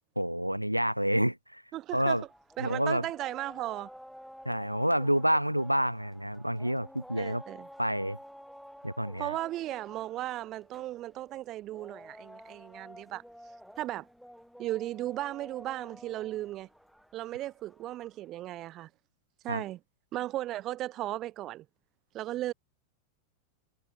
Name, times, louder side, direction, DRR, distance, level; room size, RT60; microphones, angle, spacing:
voice 1, 0.2-1.6 1.9-2.2 2.6-3.1 4.5-7.4 7.8-8.2 8.8-9.4 19.5-19.6, equal, 90° right, 0.4 m, -28 dB
voice 2, 1.7-2.3 2.6-3.9 7.2-7.7 9.2-13.2 13.8-14.1 14.6-16.7 17.1-18.9 19.4-19.8 20.1-21.7 22.1-22.5, right 14 dB, 35° right, 0.5 m, -36 dB
sound 1, 1.9-18.3, equal, ahead, 1.8 m, -51 dB
figure-of-eight pair, 90°, 0 cm